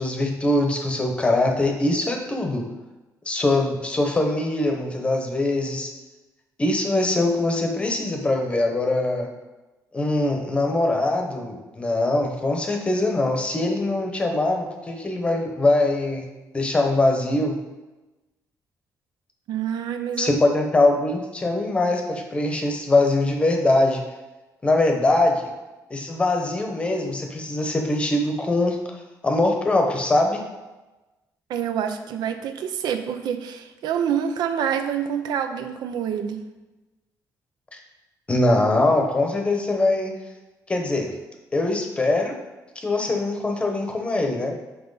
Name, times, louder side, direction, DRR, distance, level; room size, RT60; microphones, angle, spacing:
voice 1, 0.0-2.7 3.3-5.9 6.6-9.3 9.9-17.6 20.2-24.0 24.6-25.5 25.9-29.0 29.2-30.4 37.7-37.8 38.3-40.1 40.7-41.1 41.5-42.3 42.8-44.5, left 2 dB, 15° left, 3 dB, 0.8 m, -22 dB
voice 2, 19.5-20.4 31.5-36.4, right 8 dB, 90° right, 8 dB, 0.6 m, -27 dB
7.6 x 5.6 x 4.0 m, 1.1 s
cardioid pair, 175°, 7 cm